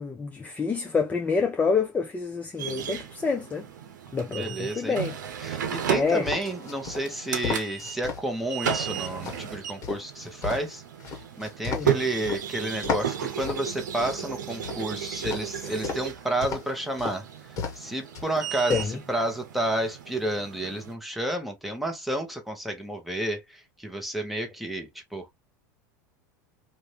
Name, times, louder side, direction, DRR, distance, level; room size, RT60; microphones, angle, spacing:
voice 1, 0.0-3.7 4.1-5.1 5.9-6.3 11.7-11.9 15.6-15.8 18.7-19.0, left 5 dB, 15° left, 0.5 m, -27 dB
sound 1, 2.6-20.9, right 9 dB, 90° right, 0.7 m, -35 dB
voice 2, 4.3-5.0 5.4-10.8 11.4-17.2 17.8-25.3, right 1 dB, ahead, 1.1 m, -31 dB
sound 2, 6.2-8.2 8.6-12.4 12.8-14.8 15.2-16.1 16.4-16.7 17.0-17.2 17.6-17.9 18.1-18.9, left 5 dB, 35° left, 1.4 m, -34 dB
2.7 x 2.6 x 3.2 m
hypercardioid pair, 105°, 10 cm